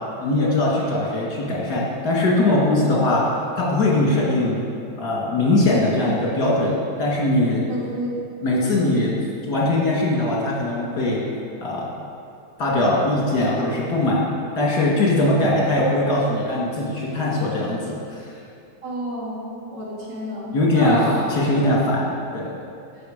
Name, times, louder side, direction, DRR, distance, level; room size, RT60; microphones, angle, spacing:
voice 1, 0.2-3.2 3.6-4.6 5.0-7.7 8.4-9.1 9.4-11.2 11.6-11.9 12.6-14.2 14.6-18.3 20.5-21.0 21.3-22.1 22.3-22.5, left 2 dB, 65° left, -4 dB, 2.6 m, -21 dB
voice 2, 7.7-8.1 18.8-21.3, equal, 75° right, -7 dB, 3.3 m, -29 dB
14.0 x 5.6 x 5.2 m, 2.5 s
omnidirectional pair, 1.9 m